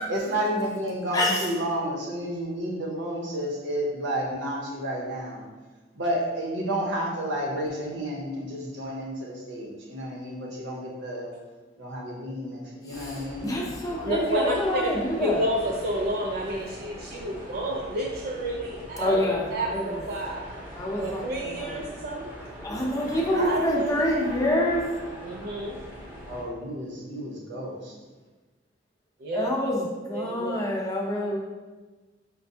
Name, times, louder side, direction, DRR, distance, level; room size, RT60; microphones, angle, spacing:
voice 1, 0.1-5.5 5.9-11.3 11.8-13.6 26.3-27.9, equal, 70° right, -2 dB, 0.8 m, -31 dB
voice 2, 12.9-15.4 19.0-20.0 20.7-21.9 22.6-24.8 29.3-31.4, left 1 dB, 20° left, -2 dB, 0.5 m, -27 dB
sound 1, 12.9-26.4, equal, 10° right, 0.8 m, -42 dB
voice 3, 14.0-14.8 15.2-19.2 19.5-20.5 21.0-22.3 23.3-24.3 25.2-25.8 29.2-29.5 30.1-30.6, right 1 dB, 55° right, 0 dB, 0.3 m, -30 dB
5.2 x 2.1 x 2.6 m, 1.3 s
head